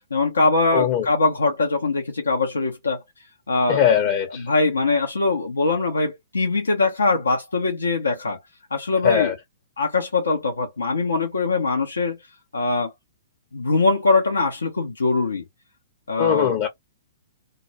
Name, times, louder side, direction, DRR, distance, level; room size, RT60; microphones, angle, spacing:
voice 1, 0.1-3.0 3.5-3.8 4.4-8.4 8.7-9.3 9.8-12.2 12.5-12.9 13.5-15.4 16.1-16.6, left 3 dB, 85° left, 0.6 m, -22 dB
voice 2, 0.7-1.1 3.7-4.5 9.0-9.3 16.2-16.7, left 9 dB, 40° left, 0.7 m, -20 dB
2.2 x 2.0 x 2.9 m
hypercardioid pair, 120°, 0 cm